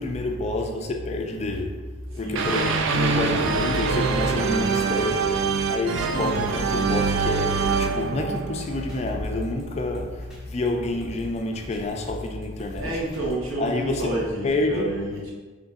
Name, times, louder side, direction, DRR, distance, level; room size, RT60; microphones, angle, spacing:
voice 1, 0.0-13.1 13.6-15.0, left 2 dB, 30° left, 0.4 m, -28 dB
sound 1, 2.4-9.3, right 4 dB, 65° right, 0.3 m, -24 dB
sound 2, 2.5-13.7, equal, 5° right, 1.0 m, -43 dB
voice 2, 12.7-15.3, right 1 dB, 85° right, 1.1 m, -29 dB
5.2 x 3.1 x 2.6 m
head